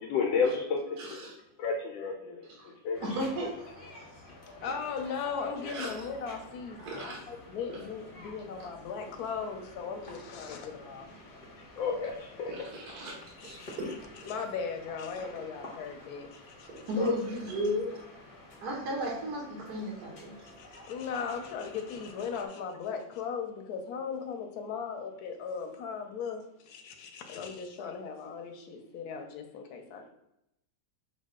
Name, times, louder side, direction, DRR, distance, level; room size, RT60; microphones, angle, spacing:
voice 1, 0.0-1.2 1.6-3.1 11.6-12.5 17.0-17.1, left 5 dB, 85° left, 0 dB, 1.4 m, -31 dB
voice 2, 1.0-1.3 2.6-2.7 3.0-3.5 4.6-4.7 5.7-5.9 6.8-7.4 7.7-7.8 12.5-13.9 14.2-14.3 16.6-18.0 18.6-20.5, right 1 dB, 60° right, -3 dB, 1.6 m, -35 dB
sound 1, 2.9-22.5, left 1 dB, 40° left, 0.8 m, -50 dB
voice 3, 4.6-11.1 13.4-13.8 14.2-16.8 20.6-30.1, left 6 dB, 65° left, 4 dB, 1.1 m, -38 dB
6.2 x 2.3 x 3.7 m, 0.82 s
omnidirectional pair, 2.1 m